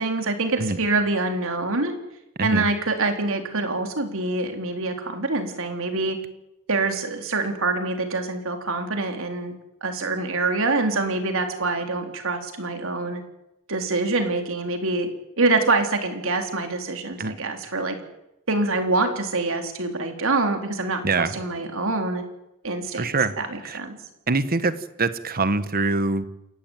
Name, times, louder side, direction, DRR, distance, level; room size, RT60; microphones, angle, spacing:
voice 1, 0.0-1.9 2.4-6.2 6.7-9.5 9.8-13.2 13.7-15.1 15.4-18.0 18.5-22.2 22.6-23.1 23.4-24.0, right 3 dB, 65° right, 5 dB, 3.9 m, -25 dB
voice 2, 22.9-23.3 23.6-23.8 24.3-24.7 25.0-26.3, right 3 dB, 45° right, 13 dB, 1.3 m, -23 dB
28.5 x 15.0 x 9.2 m, 0.89 s
head